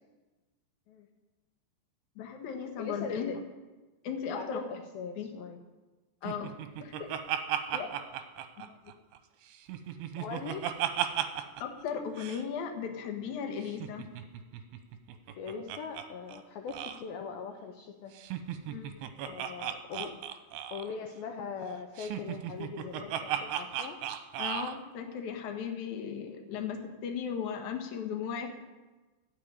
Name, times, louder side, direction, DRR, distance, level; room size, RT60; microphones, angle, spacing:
voice 1, 2.2-3.3 4.0-4.6 5.2-5.3 6.2-6.5 6.8-7.1 7.7-7.9 8.6-8.7 11.6-14.0 18.7-19.0 24.4-28.5, left 7 dB, 60° left, 3 dB, 2.2 m, -36 dB
voice 2, 2.8-3.4 4.3-5.6 10.2-10.7 15.4-18.2 19.2-20.2 20.7-24.0, left 5 dB, 80° left, 4 dB, 2.1 m, -40 dB
Laughter, 6.3-9.2 9.5-11.6 11.9-12.0 12.2-12.4 13.7-16.0 16.3-16.4 16.7-17.0 18.1-20.9 22.0-24.7, right 11 dB, 75° right, 2.6 m, -35 dB
14.0 x 7.4 x 9.9 m, 1.2 s
omnidirectional pair, 5.5 m